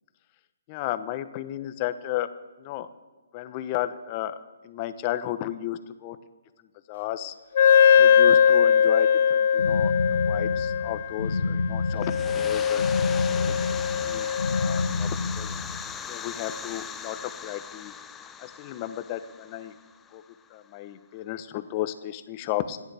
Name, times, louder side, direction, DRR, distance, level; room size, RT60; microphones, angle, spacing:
voice 1, 0.7-2.3 2.6-2.9 3.3-4.4 4.6-6.2 6.9-7.3 7.9-13.6 13.9-15.5 16.1-17.9 18.4-19.7 20.1-20.2 20.5-22.8, left 13 dB, 35° left, 11 dB, 1.0 m, -34 dB
Wind instrument woodwind instrument, 7.6-14.9, left 8 dB, 55° left, 0.4 m, -21 dB
sound 1, 9.6-15.9, left 3 dB, 85° left, 1.2 m, -29 dB
sound 2, 12.0-20.5, left 7 dB, 15° left, 0.7 m, -39 dB
27.5 x 10.5 x 3.5 m, 1.2 s
hypercardioid pair, 135°, 0 cm